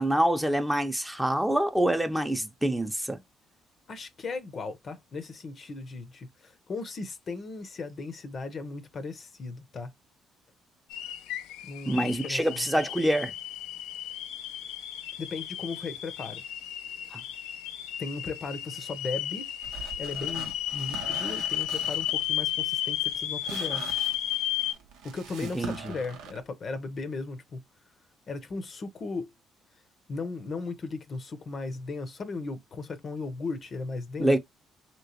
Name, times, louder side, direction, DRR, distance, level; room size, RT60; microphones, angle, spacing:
voice 1, 0.0-3.2 11.9-13.3 17.1-17.2 25.4-25.9 34.2-34.4, right 1 dB, 5° right, 0.6 m, -26 dB
voice 2, 3.9-9.9 11.6-12.6 15.2-16.4 18.0-19.5 20.0-23.8 25.0-27.6 28.3-29.3 30.1-34.3, left 3 dB, 50° left, 0.6 m, -37 dB
sound 1, 10.9-24.7, left 12 dB, 90° left, 0.3 m, -33 dB
sound 2, 19.6-26.4, right 6 dB, 90° right, 0.6 m, -43 dB
3.0 x 3.0 x 2.8 m
supercardioid pair, 70°, 0 cm